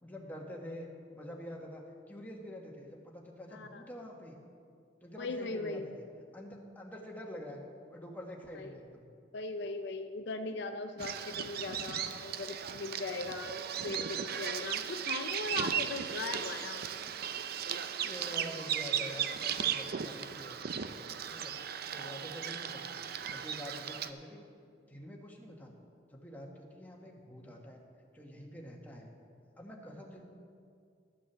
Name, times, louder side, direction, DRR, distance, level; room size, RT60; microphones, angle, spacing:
voice 1, 0.0-4.4 5.0-6.0 6.3-7.6 7.9-9.1 15.7-15.8 18.0-20.7 21.3-21.6 21.9-24.5 24.9-25.7 26.1-27.8 28.1-29.1 29.6-30.2, equal, 10° left, -1 dB, 1.3 m, -46 dB
voice 2, 3.5-3.8 5.2-5.9 8.5-8.8 9.3-16.9 19.2-19.3, left 3 dB, 65° left, 7 dB, 0.5 m, -39 dB
Bird vocalization bird call bird song, 11.0-24.1, right 8 dB, 55° right, 0.5 m, -37 dB
12.5 x 6.2 x 7.2 m, 2.2 s
head